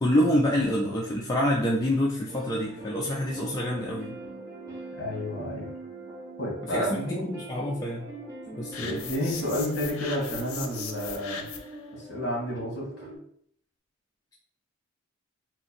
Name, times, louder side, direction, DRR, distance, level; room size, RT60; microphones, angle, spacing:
voice 1, 0.0-4.2 6.6-8.1 8.6-9.0, equal, 15° left, -3 dB, 0.3 m, -27 dB
sound 1, 2.3-13.2, right 2 dB, 15° right, 0.8 m, -41 dB
voice 2, 5.0-5.7 6.4-7.3 8.8-11.5 11.9-13.1, equal, 50° left, -2 dB, 1.4 m, -31 dB
sound 2, 8.7-11.8, left 6 dB, 85° left, 0.5 m, -38 dB
2.9 x 2.5 x 4.0 m, 0.63 s
head